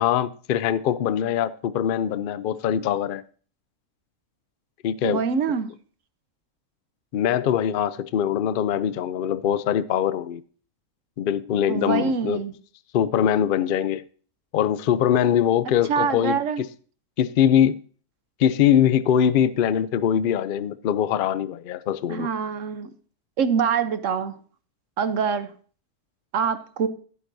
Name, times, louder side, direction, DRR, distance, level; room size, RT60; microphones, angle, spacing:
voice 1, 0.0-3.2 4.8-5.2 7.1-10.4 11.2-12.4 12.9-14.0 14.5-16.4 17.2-17.8 18.4-22.3, left 9 dB, 75° left, 0.4 m, -22 dB
voice 2, 5.0-5.7 11.7-12.5 15.9-16.6 22.1-22.9 23.4-24.4 25.0-25.5 26.3-26.9, right 6 dB, 60° right, 1.1 m, -24 dB
15.5 x 8.9 x 2.7 m
omnidirectional pair, 1.6 m